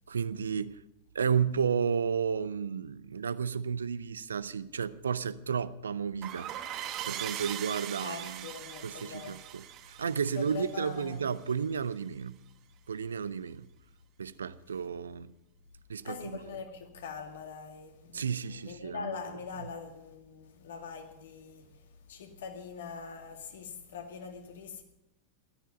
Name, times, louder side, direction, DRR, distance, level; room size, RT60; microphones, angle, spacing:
voice 1, 0.1-0.8 1.1-8.5 8.8-12.4 12.9-13.7 14.2-15.3 15.9-16.3 18.1-19.1, right 6 dB, 70° right, 0.6 m, -32 dB
sound 1, 6.2-11.5, right 11 dB, 35° right, 1.1 m, -41 dB
voice 2, 8.0-9.5 10.3-11.2 16.0-24.8, left 6 dB, 60° left, 2.2 m, -43 dB
17.0 x 13.0 x 5.3 m
figure-of-eight pair, 90°, 0 cm